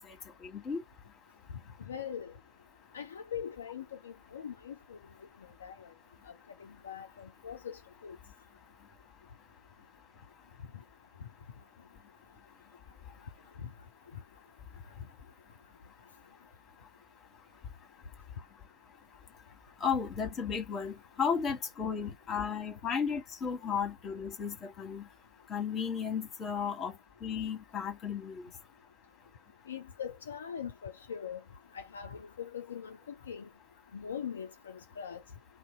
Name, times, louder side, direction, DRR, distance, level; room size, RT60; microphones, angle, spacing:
voice 1, 0.4-0.8 19.8-25.1 25.5-28.5, left 6 dB, 25° left, 1.2 m, -34 dB
voice 2, 1.9-2.3 2.9-5.0 5.4-5.9 6.3-6.4 6.6-8.2 13.6-13.7 29.7-31.4 31.7-33.5 33.9-35.2, left 8 dB, 65° left, 0.4 m, -42 dB
2.6 x 2.2 x 3.4 m
figure-of-eight pair, 90°, 0 cm